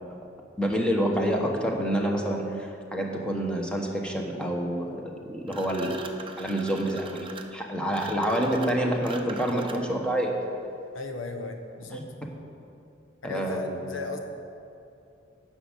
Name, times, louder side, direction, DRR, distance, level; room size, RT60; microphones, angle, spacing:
voice 1, 0.6-6.0 6.4-10.3 11.9-12.0 13.2-13.8, equal, 5° left, 0 dB, 1.2 m, -28 dB
sound 1, 5.5-10.1, right 4 dB, 25° right, 0.7 m, -43 dB
voice 2, 10.9-12.1 13.2-14.2, left 3 dB, 75° left, 4 dB, 1.1 m, -36 dB
9.9 x 6.3 x 8.2 m, 2.6 s
head